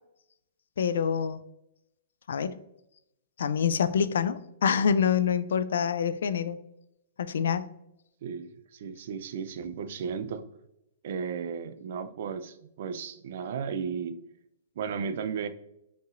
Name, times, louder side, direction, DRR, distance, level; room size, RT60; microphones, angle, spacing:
voice 1, 0.8-1.4 2.3-2.6 3.4-6.6 7.2-7.7, left 7 dB, 75° left, 13 dB, 0.3 m, -26 dB
voice 2, 8.2-10.4 11.0-14.1 14.8-15.5, right 6 dB, 60° right, 11 dB, 0.4 m, -34 dB
5.3 x 2.9 x 2.5 m, 0.82 s
hypercardioid pair, 140°, 0 cm